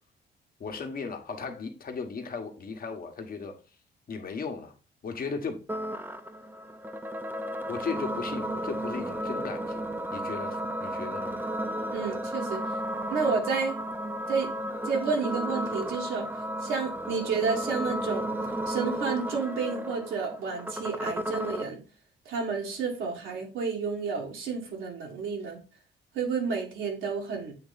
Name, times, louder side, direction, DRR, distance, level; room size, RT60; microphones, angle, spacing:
voice 1, 0.6-3.5 4.1-4.7 5.0-5.6 7.7-11.3, left 5 dB, 45° left, 1.4 m, -36 dB
sound 1, 5.7-21.7, right 1 dB, 10° right, 0.7 m, -33 dB
voice 2, 11.9-12.6 13.1-13.7 14.3-14.5 14.8-16.3 16.6-18.3 18.7-21.8 22.2-25.6 26.1-27.5, right 5 dB, 80° right, 1.7 m, -30 dB
7.7 x 3.2 x 4.0 m
cardioid pair, 90°, 20 cm